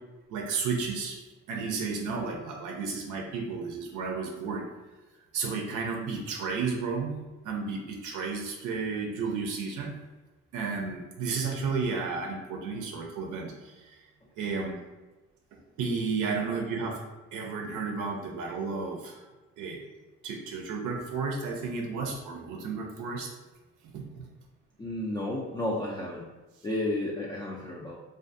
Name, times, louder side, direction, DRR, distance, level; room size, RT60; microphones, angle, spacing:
voice 1, 0.3-4.6 5.3-7.2 7.4-9.9 10.5-14.0 14.4-14.7 15.5-17.0 17.3-19.2 19.6-19.8 20.2-23.3 23.9-24.0, right 4 dB, 80° right, 1 dB, 0.5 m, -32 dB
voice 2, 24.8-26.2 26.6-28.0, left 1 dB, 15° left, -4 dB, 0.3 m, -32 dB
2.5 x 2.4 x 2.5 m, 1.1 s
cardioid pair, 90°, 30 cm